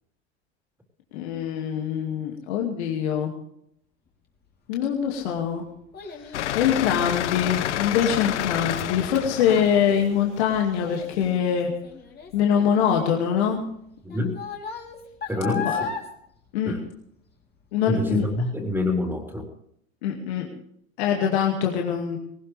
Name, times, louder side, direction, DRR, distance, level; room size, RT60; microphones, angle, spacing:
voice 1, 1.1-3.3 4.7-5.6 6.1-11.7 12.3-13.6 15.6-15.8 16.5-16.8 17.7-18.3 20.0-20.5 21.0-22.2, left 8 dB, 70° left, 1 dB, 2.4 m, -24 dB
Child speech kid speaking, 4.8-17.4 17.8-18.2 18.7-18.8, left 6 dB, 30° left, 3.5 m, -38 dB
sound 1, 6.3-11.3, left 13 dB, 85° left, 0.5 m, -29 dB
voice 2, 14.0-14.4 15.3-15.9 16.6-16.8 17.9-19.5, left 2 dB, 5° right, 1 dB, 3.8 m, -26 dB
19.5 x 18.5 x 3.4 m, 0.73 s
hypercardioid pair, 85°, 34 cm